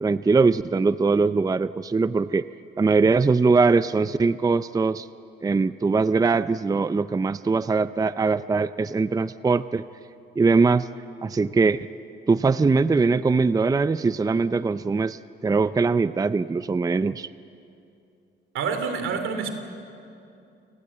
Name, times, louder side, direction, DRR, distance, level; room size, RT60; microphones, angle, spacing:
voice 1, 0.0-2.4 2.8-5.1 5.4-9.8 10.4-10.9 11.2-11.8 12.3-17.3, right 4 dB, 20° right, 14 dB, 0.5 m, -21 dB
voice 2, 18.5-19.5, right 5 dB, 80° right, 8 dB, 3.0 m, -27 dB
29.0 x 18.5 x 8.6 m, 2.6 s
cardioid pair, 90°, 20 cm